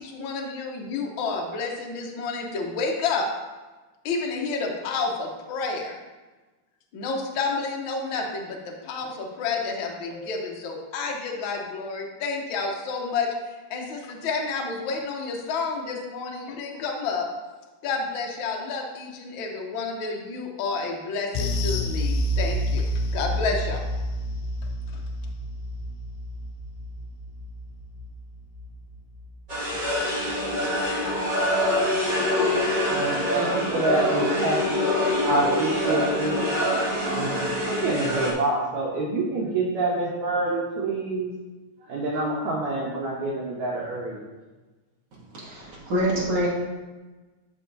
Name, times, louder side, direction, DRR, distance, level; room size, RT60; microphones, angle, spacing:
voice 1, 0.0-3.3 4.0-6.0 6.9-13.3 13.7-17.3 17.8-22.8 23.1-23.8 24.9-25.0, left 4 dB, 65° left, 1 dB, 1.2 m, -30 dB
sound 1, 21.3-30.0 30.3-30.5 30.9-31.0, equal, 85° left, 2.0 m, -29 dB
sound 2, 29.5-38.3, left 1 dB, 20° right, 1.4 m, -25 dB
voice 2, 32.9-34.6 35.2-36.4 37.0-41.3 41.9-44.2, right 2 dB, 75° right, -4 dB, 2.2 m, -27 dB
voice 3, 45.3-46.5, equal, 50° right, -4 dB, 2.0 m, -25 dB
12.0 x 4.6 x 2.7 m, 1.2 s
omnidirectional pair, 3.3 m